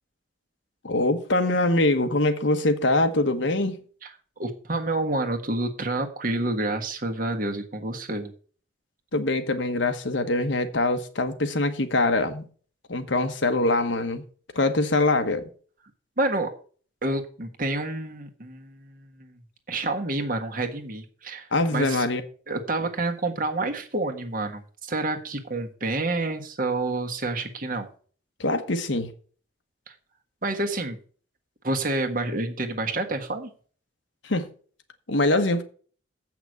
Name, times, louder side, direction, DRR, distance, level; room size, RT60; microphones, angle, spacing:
voice 1, 0.8-3.8 9.1-12.5 12.9-14.2 14.5-15.4 21.5-22.2 28.4-29.1 34.2-34.5 35.1-35.6, left 2 dB, 75° left, 1.2 m, -23 dB
voice 2, 4.4-8.3 16.2-16.5 17.0-19.4 19.7-22.0 22.5-27.9 29.9-30.0 30.4-31.0 31.6-33.5, right 2 dB, 45° right, 1.4 m, -28 dB
8.0 x 6.0 x 7.4 m
head